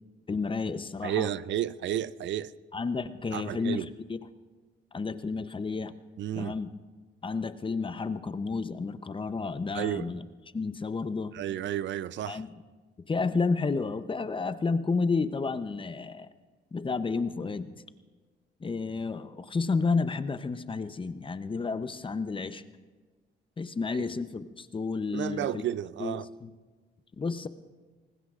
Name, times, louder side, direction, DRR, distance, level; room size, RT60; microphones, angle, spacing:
voice 1, 0.3-1.3 2.7-4.2 4.9-5.9 6.4-6.7 7.2-10.2 10.5-11.3 12.3-12.5 13.1-16.3 16.7-17.7 18.6-22.6 23.6-25.5 26.0-26.5 27.2-27.5, left 4 dB, 25° left, 0.7 m, -31 dB
voice 2, 1.0-2.5 3.3-3.9 6.2-6.6 9.7-10.1 11.3-12.4 24.0-24.1 25.1-26.3, right 11 dB, 65° right, 0.5 m, -32 dB
25.0 x 19.0 x 2.5 m
cardioid pair, 90°, 20 cm